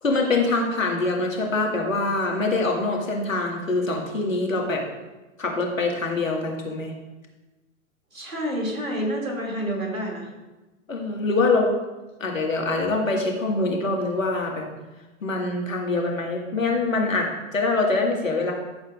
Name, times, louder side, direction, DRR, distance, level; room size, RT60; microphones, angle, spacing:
voice 1, 0.0-4.8 5.4-6.9 10.9-11.7 12.2-14.7 15.2-18.5, left 3 dB, 75° left, 0 dB, 2.0 m, -24 dB
voice 2, 8.1-10.3, equal, 80° right, 0 dB, 2.7 m, -28 dB
14.0 x 7.4 x 2.5 m, 1.1 s
figure-of-eight pair, 105°, 40 cm